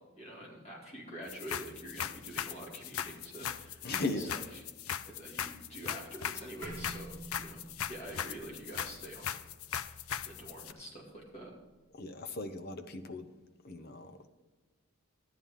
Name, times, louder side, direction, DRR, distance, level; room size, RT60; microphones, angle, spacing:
voice 1, 0.0-4.6 5.1-7.6 7.9-9.4 9.7-9.8 10.2-11.5, right 1 dB, 30° left, -2 dB, 2.5 m, -46 dB
sound 1, 1.3-10.7, left 9 dB, 80° left, 0.5 m, -39 dB
voice 2, 3.8-4.3 11.9-13.3 13.6-14.3, left 2 dB, 45° left, 9 dB, 0.7 m, -38 dB
sound 2, 6.6-11.2, right 1 dB, 60° left, 2.1 m, -49 dB
12.5 x 9.8 x 3.7 m, 1.2 s
head